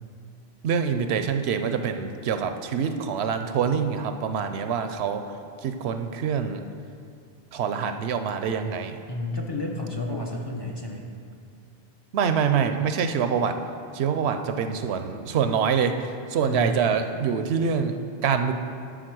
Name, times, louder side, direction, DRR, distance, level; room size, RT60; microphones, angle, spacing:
voice 1, 0.6-5.2 5.6-6.6 7.5-9.0 10.1-10.2 12.1-13.6 13.9-18.5, right 6 dB, 80° right, 8 dB, 0.8 m, -25 dB
voice 2, 9.1-11.1 16.4-17.2, left 2 dB, 25° left, 0 dB, 0.8 m, -31 dB
10.5 x 4.1 x 6.1 m, 2.4 s
omnidirectional pair, 1.1 m